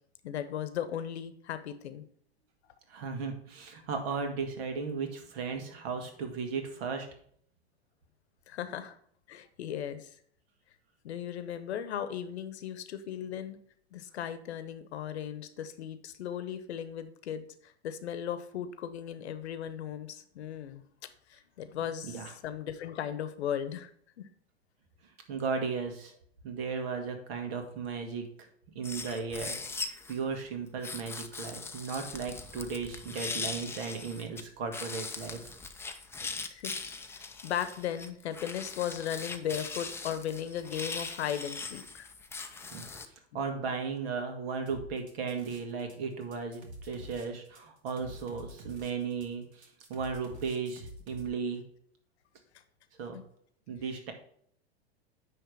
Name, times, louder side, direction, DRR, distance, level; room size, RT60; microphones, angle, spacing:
voice 1, 0.2-2.0 8.5-9.0 9.3-10.1 11.0-13.6 13.9-20.8 21.3-23.9 36.5-42.1 53.1-53.3, left 9 dB, 80° left, 11 dB, 0.9 m, -37 dB
voice 2, 2.9-7.1 22.0-22.3 25.3-26.1 26.4-28.2 28.8-35.5 42.7-42.9 43.3-51.6 53.0-53.2 53.7-54.1, right 5 dB, 65° right, 5 dB, 1.7 m, -36 dB
sound 1, 28.8-30.2 30.8-34.4 34.7-43.1, left 4 dB, 10° left, 0.5 m, -40 dB
sound 2, 44.7-45.9 46.2-51.3, right 1 dB, 80° right, 1.7 m, -47 dB
9.5 x 3.3 x 4.6 m, 0.63 s
hypercardioid pair, 105°, 33 cm